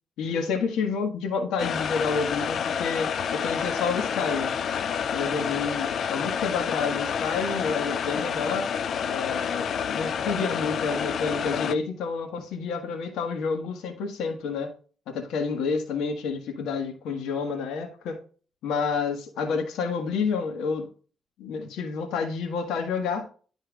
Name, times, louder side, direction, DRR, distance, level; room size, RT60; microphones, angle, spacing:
voice 1, 0.2-4.5 5.1-8.7 9.1-14.7 15.1-18.2 18.6-20.9 21.4-23.3, left 5 dB, 85° left, 1.5 m, -29 dB
sound 1, 1.6-11.7, left 7 dB, 60° left, 0.4 m, -29 dB
12.0 x 4.4 x 2.4 m
cardioid pair, 90°, 0 cm